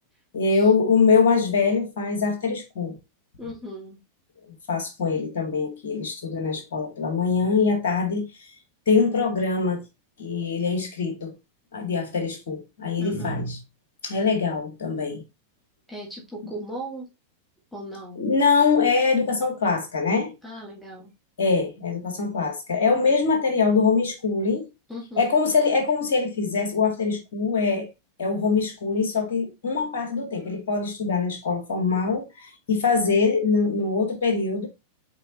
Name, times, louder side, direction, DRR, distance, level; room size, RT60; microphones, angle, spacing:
voice 1, 0.3-3.0 4.7-8.2 8.9-9.8 10.2-11.3 11.7-13.6 14.0-15.2 18.2-20.3 21.4-24.7 25.2-27.9 28.2-34.7, left 4 dB, 60° left, 2.0 m, -23 dB
voice 2, 3.4-4.0 13.0-13.5 15.9-17.1 17.7-18.2 20.4-21.1 24.9-25.3, right 1 dB, ahead, 1.9 m, -37 dB
5.2 x 4.7 x 4.2 m
figure-of-eight pair, 90°, 0 cm